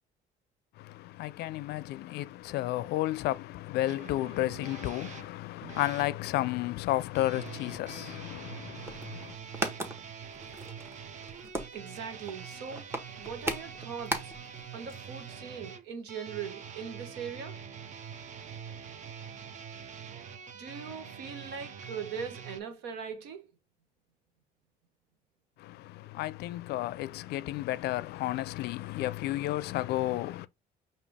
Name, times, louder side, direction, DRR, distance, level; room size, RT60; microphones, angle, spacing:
voice 1, 0.8-9.4 25.6-30.5, left 15 dB, 75° left, 0.4 m, -32 dB
sound 1, 3.9-6.1 7.1-22.6, right 7 dB, 45° right, 0.7 m, -45 dB
sound 2, 8.7-14.6 14.9-15.0 15.2-15.4, right 1 dB, 15° right, 1.0 m, -37 dB
voice 2, 11.7-12.9 13.2-14.3 14.7-17.6 20.5-23.5, right 6 dB, 90° right, 1.1 m, -40 dB
5.2 x 2.8 x 3.4 m
cardioid pair, 110°, 17 cm